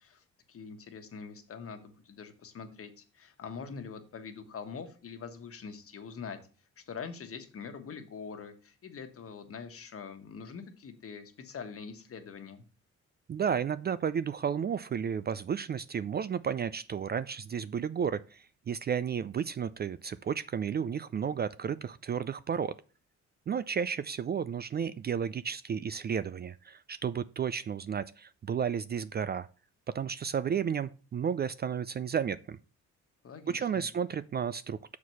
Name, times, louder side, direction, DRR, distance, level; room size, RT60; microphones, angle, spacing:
voice 1, 0.0-6.4 6.8-12.6 33.2-33.8, left 6 dB, 50° left, 1.3 m, -44 dB
voice 2, 13.3-22.8 23.5-29.5 29.9-32.6 33.5-35.0, right 7 dB, 35° right, 0.4 m, -32 dB
6.3 x 4.7 x 5.5 m
cardioid pair, 90°, 30 cm